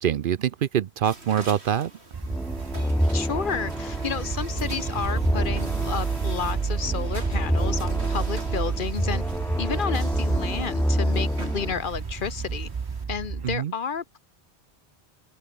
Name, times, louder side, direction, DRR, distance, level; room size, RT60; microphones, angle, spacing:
voice 1, 0.0-1.9 13.4-13.7, right 9 dB, 60° right, 0.7 m, -24 dB
sound 1, 1.0-13.0, right 2 dB, 85° right, 4.6 m, -45 dB
sound 2, 2.1-13.6, right 5 dB, 40° right, 0.3 m, -31 dB
sound 3, 2.2-11.7, equal, ahead, 1.1 m, -28 dB
voice 2, 3.1-9.2 9.6-12.7 13.1-14.2, left 6 dB, 55° left, 1.0 m, -31 dB
omnidirectional pair, 1.1 m